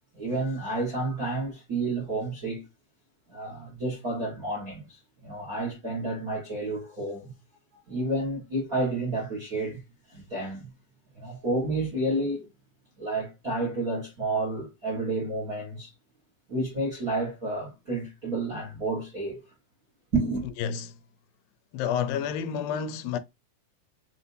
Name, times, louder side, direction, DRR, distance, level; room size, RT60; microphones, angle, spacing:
voice 1, 0.1-2.7 3.3-7.3 7.7-9.8 10.1-10.7 11.1-12.5 13.0-15.9 16.5-19.4 20.1-20.5, right 2 dB, 50° right, 1.0 m, -30 dB
voice 2, 20.6-20.9 21.7-23.2, left 8 dB, 85° left, 2.4 m, -29 dB
6.0 x 2.7 x 2.6 m
omnidirectional pair, 4.0 m